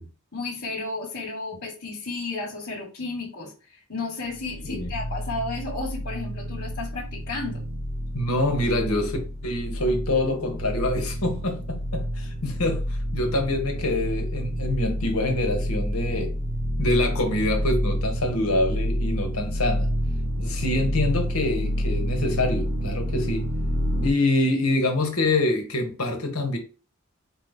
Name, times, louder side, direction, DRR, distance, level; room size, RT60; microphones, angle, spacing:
voice 1, 0.3-7.7, left 3 dB, 45° left, 1.5 m, -33 dB
sound 1, 4.2-24.1, equal, 80° right, 0.8 m, -29 dB
voice 2, 8.1-9.2 9.4-16.3 16.8-19.9 20.4-23.5 24.0-26.6, left 2 dB, 80° left, 1.3 m, -25 dB
4.4 x 2.9 x 3.5 m
head